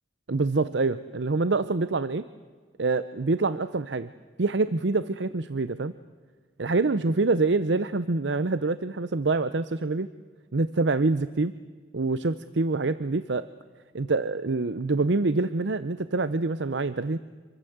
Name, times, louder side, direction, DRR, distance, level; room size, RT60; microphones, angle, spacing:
voice 1, 0.3-2.2 2.8-4.1 4.4-5.9 6.6-10.1 10.5-11.5 11.9-13.5 13.9-17.2, right 3 dB, 70° right, 14 dB, 0.7 m, -26 dB
27.0 x 24.0 x 8.0 m, 1.5 s
head